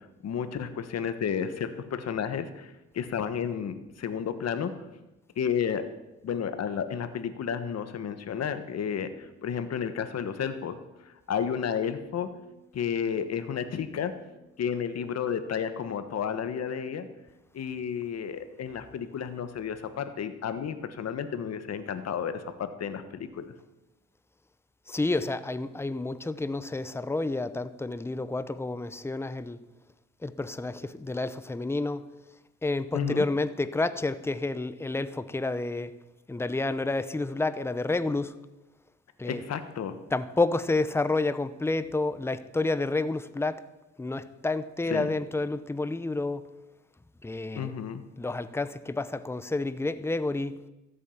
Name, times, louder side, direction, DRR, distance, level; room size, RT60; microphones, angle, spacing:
voice 1, 0.2-2.7 2.9-4.7 5.4-5.8 6.2-9.1 9.4-10.8 11.3-12.3 12.7-14.1 14.6-17.1 17.5-23.5 32.9-33.3 39.3-40.0 44.9-45.1 47.5-48.0, left 7 dB, 55° left, 1.4 m, -31 dB
voice 2, 24.9-29.6 30.2-32.1 32.6-35.9 36.3-38.4 39.2-39.4 40.1-43.6 44.0-46.5 47.2-47.7 48.2-50.7, left 2 dB, 10° left, 0.7 m, -29 dB
14.0 x 8.5 x 7.2 m
cardioid pair, 90°, 30 cm